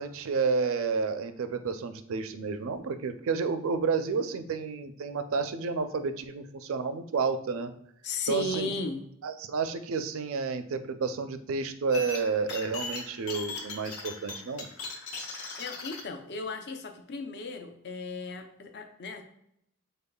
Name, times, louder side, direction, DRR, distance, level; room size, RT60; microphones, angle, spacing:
voice 1, 0.0-7.7 8.3-8.7 9.2-14.7, right 5 dB, 65° right, 10 dB, 0.4 m, -30 dB
voice 2, 8.0-9.0 15.6-19.2, left 3 dB, 55° left, 6 dB, 0.6 m, -35 dB
sound 1, 11.9-16.0, left 3 dB, 85° left, 0.8 m, -39 dB
5.3 x 3.9 x 2.3 m, 0.74 s
head